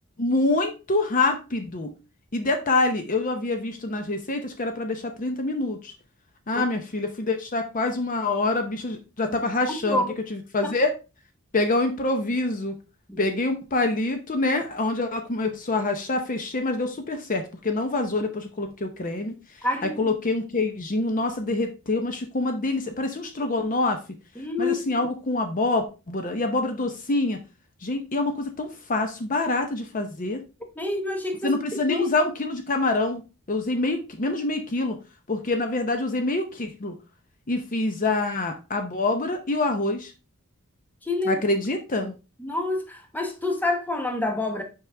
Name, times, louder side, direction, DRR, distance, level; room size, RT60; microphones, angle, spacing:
voice 1, 0.2-1.9 2.3-5.9 6.5-10.0 10.3-10.9 11.5-12.7 13.2-24.0 24.6-27.4 27.8-30.4 31.4-33.2 33.5-35.0 35.3-36.9 37.5-40.1 41.3-42.1, left 2 dB, 40° left, 0.7 m, -26 dB
voice 2, 19.6-20.1 24.4-24.7 30.8-32.1 41.0-41.4 42.4-44.6, left 2 dB, 10° left, 0.9 m, -27 dB
5.9 x 5.1 x 3.4 m
head